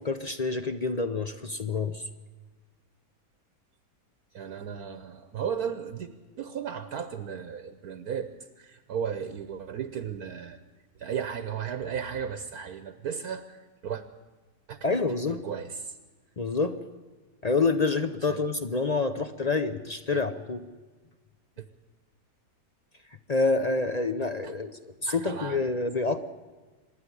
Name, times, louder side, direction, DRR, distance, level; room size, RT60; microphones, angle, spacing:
voice 1, 0.0-2.0 14.8-15.4 16.4-16.7 17.4-20.6 23.3-26.2, left 3 dB, 45° left, 9 dB, 0.5 m, -27 dB
voice 2, 4.3-6.1 6.4-8.3 8.6-10.6 11.0-13.6 13.8-14.0 14.7-14.8 15.4-15.7 18.3-18.4 20.1-20.2 24.4-24.5 25.1-25.6, right 7 dB, 65° right, 11 dB, 1.3 m, -34 dB
25.5 x 10.5 x 9.8 m, 1.3 s
omnidirectional pair, 1.8 m